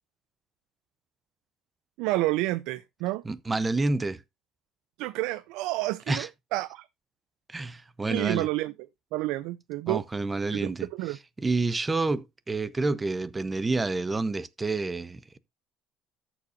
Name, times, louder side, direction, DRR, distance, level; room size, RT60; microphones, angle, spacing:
voice 1, 2.0-3.2 5.0-6.9 8.1-8.7 9.1-10.0 10.5-11.2, right 18 dB, 80° right, 0.5 m, -29 dB
voice 2, 3.2-4.2 6.1-6.3 7.5-8.5 9.9-10.9 11.4-15.4, right 3 dB, 15° right, 0.7 m, -28 dB
13.5 x 7.1 x 2.6 m
cardioid pair, 135°, 0 cm